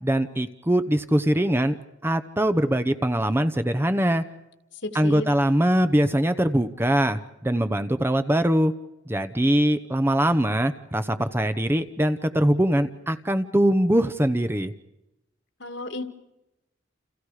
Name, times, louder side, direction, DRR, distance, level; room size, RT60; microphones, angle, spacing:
voice 1, 0.0-1.8 2.0-4.2 4.9-8.7 9.1-14.7, right 1 dB, 10° right, 10 dB, 0.9 m, -22 dB
voice 2, 4.8-5.3 15.6-16.0, left 2 dB, 60° left, 8 dB, 2.3 m, -32 dB
29.5 x 29.0 x 5.0 m, 0.91 s
head